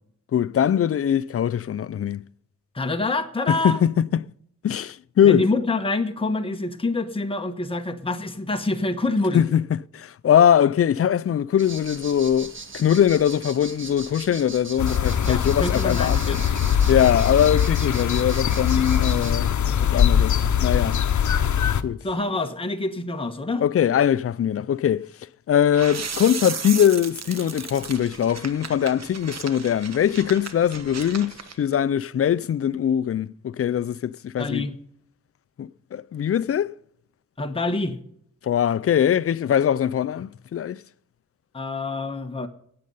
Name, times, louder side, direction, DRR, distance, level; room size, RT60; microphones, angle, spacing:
voice 1, 0.3-2.2 3.5-4.2 4.6-5.5 9.3-9.6 9.9-16.4 16.9-19.5 19.8-21.0 21.8-22.0 23.6-25.0 25.5-34.7 35.6-36.7 38.4-40.8, left 9 dB, 50° left, 0.4 m, -21 dB
voice 2, 2.7-3.8 5.2-9.4 15.3-16.4 22.0-23.6 34.4-34.7 37.4-38.0 41.5-42.5, left 2 dB, 20° left, 1.2 m, -26 dB
sound 1, 11.6-19.3, right 3 dB, 40° right, 1.7 m, -39 dB
sound 2, 14.8-21.8, left 8 dB, 75° left, 0.8 m, -22 dB
sound 3, 25.7-31.5, right 6 dB, 60° right, 1.3 m, -35 dB
18.0 x 7.7 x 5.5 m
wide cardioid pair, 100°, 29 cm